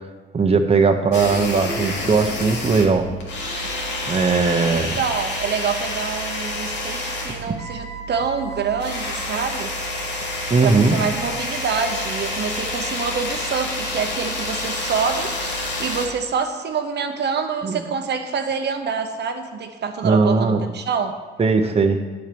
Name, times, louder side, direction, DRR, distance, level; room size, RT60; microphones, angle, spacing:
voice 1, 0.3-3.1 4.1-5.0 7.5-7.6 10.5-11.0 17.6-17.8 20.0-20.6 21.4-22.0, right 4 dB, 30° right, 4 dB, 1.1 m, -18 dB
sound 1, 1.1-16.1, left 1 dB, 65° left, 2.4 m, -28 dB
voice 2, 4.6-9.7 10.6-15.3 15.8-21.2, right 6 dB, 60° right, 5 dB, 1.0 m, -26 dB
10.0 x 7.5 x 5.3 m, 1.3 s
cardioid pair, 90°, 20 cm